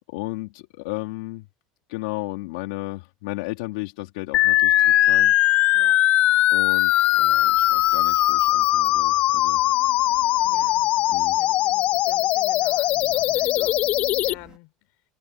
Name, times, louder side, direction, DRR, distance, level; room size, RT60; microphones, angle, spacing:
voice 1, 0.1-1.5 1.9-5.3 6.5-9.6 11.1-11.4, left 20 dB, 90° left, 2.8 m, -34 dB
sound 1, 4.3-14.3, left 15 dB, 55° left, 0.5 m, -20 dB
sound 2, 6.7-14.6, right 7 dB, 30° right, 2.8 m, -52 dB
voice 2, 10.3-10.8 11.4-13.8 14.2-14.7, left 25 dB, 70° left, 5.7 m, -46 dB
supercardioid pair, 125°, 3 cm